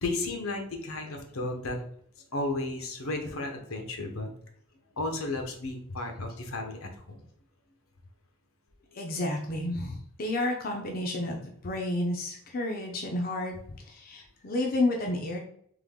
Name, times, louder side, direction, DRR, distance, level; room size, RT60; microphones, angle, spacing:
voice 1, 0.0-1.8 2.3-4.3 5.0-7.2, left 2 dB, 75° left, 4 dB, 0.9 m, -33 dB
voice 2, 8.9-11.4 11.6-13.5 13.9-15.4, left 2 dB, 45° left, 1 dB, 0.6 m, -30 dB
3.7 x 3.2 x 3.6 m, 0.67 s
head